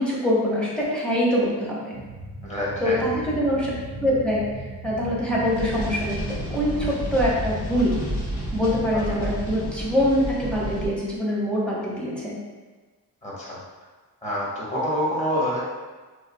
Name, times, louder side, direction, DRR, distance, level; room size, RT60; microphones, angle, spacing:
voice 1, 0.0-1.9 2.8-3.7 4.0-4.4 4.8-6.2 6.5-8.0 8.5-12.4, equal, 5° left, -7 dB, 1.1 m, -24 dB
sound 1, 1.9-9.7, right 2 dB, 30° right, 0.4 m, -37 dB
voice 2, 2.4-3.0 6.8-6.9 9.2-9.3 13.2-13.6 14.2-15.6, equal, 20° left, -8 dB, 1.4 m, -27 dB
sound 2, 5.4-10.9, equal, 50° left, 1.4 m, -31 dB
6.2 x 2.3 x 2.3 m, 1.3 s
wide cardioid pair, 115°, 38 cm